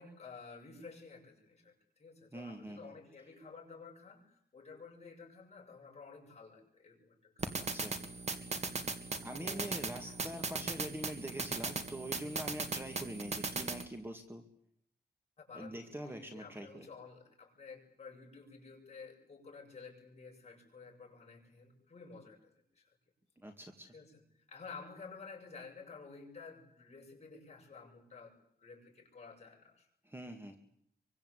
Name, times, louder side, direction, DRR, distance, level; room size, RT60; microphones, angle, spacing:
voice 1, 0.0-7.7 8.5-9.7 10.0-10.2 15.4-22.9 23.9-24.2 24.5-29.9, left 4 dB, 40° left, 0 dB, 7.8 m, -52 dB
voice 2, 2.3-2.9 7.5-8.0 9.2-14.4 15.5-16.9 23.4-23.9 30.0-30.6, right 1 dB, 15° right, 5 dB, 2.3 m, -44 dB
sound 1, 7.4-13.8, right 3 dB, 40° right, 2.2 m, -38 dB
25.5 x 24.5 x 8.4 m, 0.69 s
wide cardioid pair, 150°, 17 cm